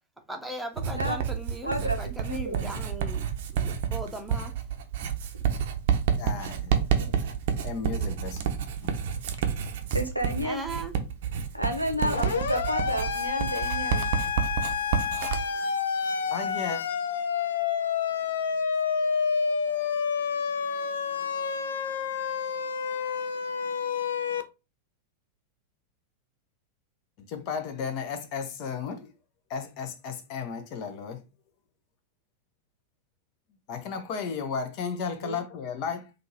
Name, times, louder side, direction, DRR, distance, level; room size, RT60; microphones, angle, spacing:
voice 1, 0.3-3.3 3.5-4.5 10.4-10.9, right 1 dB, 5° right, 0.9 m, -38 dB
Writing, 0.8-15.4, right 7 dB, 55° right, 0.6 m, -29 dB
voice 2, 1.6-2.7 7.0-7.2 9.9-10.6 11.5-14.1 35.2-35.4, equal, 90° right, 0.7 m, -31 dB
voice 3, 6.2-8.4 8.8-9.0 16.3-16.8 27.2-29.1 29.5-31.2 33.7-36.1, left 6 dB, 40° left, 0.8 m, -34 dB
Siren, 12.0-24.4, left 6 dB, 65° left, 0.4 m, -29 dB
3.7 x 2.5 x 2.9 m
figure-of-eight pair, 90°, 0 cm